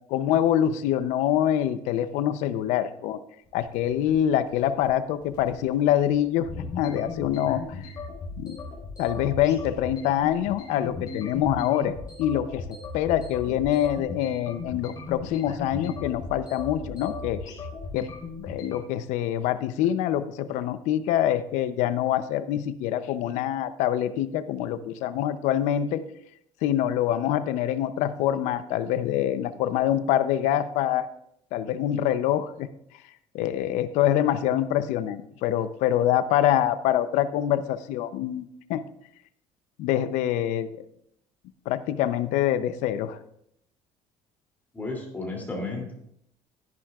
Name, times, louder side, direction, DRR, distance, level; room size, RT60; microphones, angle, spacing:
voice 1, 0.1-3.2 3.5-6.5 6.8-7.8 8.4-8.6 9.0-12.7 12.9-17.4 17.9-18.1 18.4-26.0 26.6-31.1 31.5-32.7 33.3-38.8 39.8-40.9 41.7-43.2, left 11 dB, 85° left, 13 dB, 0.6 m, -25 dB
sound 1, 3.5-18.8, left 3 dB, 35° left, 3.7 m, -38 dB
voice 2, 44.7-45.9, left 2 dB, 15° left, 0 dB, 2.8 m, -33 dB
13.0 x 10.5 x 2.4 m, 0.75 s
cardioid pair, 155°, 12 cm